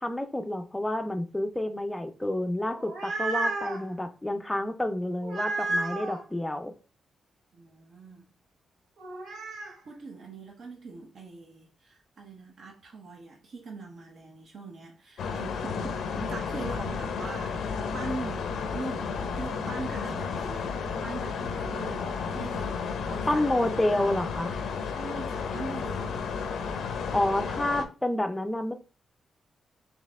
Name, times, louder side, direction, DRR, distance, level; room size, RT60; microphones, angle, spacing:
voice 1, 0.0-6.7 23.3-24.5 27.1-28.7, left 1 dB, 10° left, 0.5 m, -29 dB
sound 1, 2.7-3.8 5.2-6.2 9.0-9.7, right 2 dB, 80° right, 1.4 m, -31 dB
voice 2, 7.5-8.3 9.8-20.7 21.0-23.9 24.9-26.3, right 3 dB, 55° right, 0.8 m, -42 dB
sound 2, 15.2-27.8, left 5 dB, 80° left, 0.6 m, -32 dB
4.4 x 2.8 x 3.4 m
wide cardioid pair, 140°, 0 cm